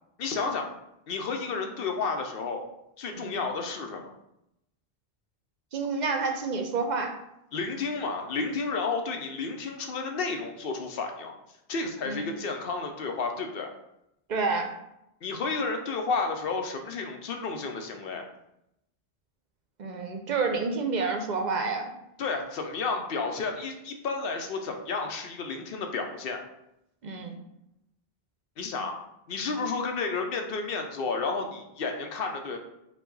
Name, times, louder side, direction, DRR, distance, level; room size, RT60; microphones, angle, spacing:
voice 1, 0.2-0.7 1.1-2.6 3.0-4.1 7.5-11.3 11.7-13.7 15.2-18.2 22.2-26.4 28.6-29.0 29.3-32.6, left 4 dB, 65° left, 4 dB, 0.8 m, -31 dB
voice 2, 5.7-7.2 12.0-12.3 14.3-14.7 19.8-21.9 27.0-27.3, right 4 dB, 55° right, 4 dB, 0.6 m, -29 dB
4.7 x 2.3 x 3.8 m, 0.83 s
omnidirectional pair, 1.0 m